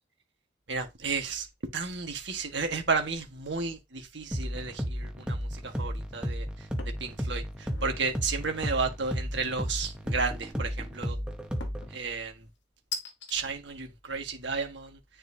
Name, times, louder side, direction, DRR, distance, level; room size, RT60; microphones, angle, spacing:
voice 1, 0.7-1.5 1.7-6.5 7.0-11.2 11.9-12.3 13.3-15.0, right 4 dB, 70° right, 1.6 m, -32 dB
sound 1, 4.3-12.0, equal, 5° right, 0.9 m, -34 dB
sound 2, 6.8-7.1 7.5-8.0 9.7-10.3 11.6-12.0 12.9-13.4, left 4 dB, 75° left, 1.4 m, -40 dB
9.8 x 4.3 x 2.8 m
head